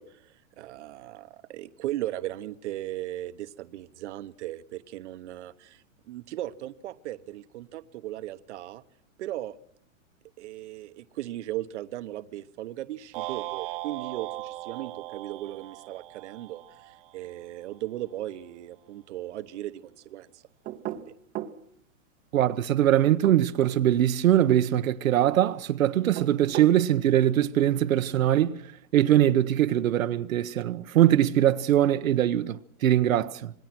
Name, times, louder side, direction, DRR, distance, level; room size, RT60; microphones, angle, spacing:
voice 1, 0.0-8.8 9.2-9.6 10.4-20.4 20.9-21.1, right 14 dB, 60° right, 1.1 m, -37 dB
sound 1, 13.1-17.5, right 18 dB, 40° right, 1.1 m, -38 dB
sound 2, 20.6-21.6 23.0-23.8 26.0-26.8, right 12 dB, 20° right, 0.9 m, -35 dB
voice 2, 22.3-28.6 28.9-33.5, right 12 dB, 85° right, 1.1 m, -22 dB
27.0 x 20.0 x 6.0 m
hypercardioid pair, 155°, 40 cm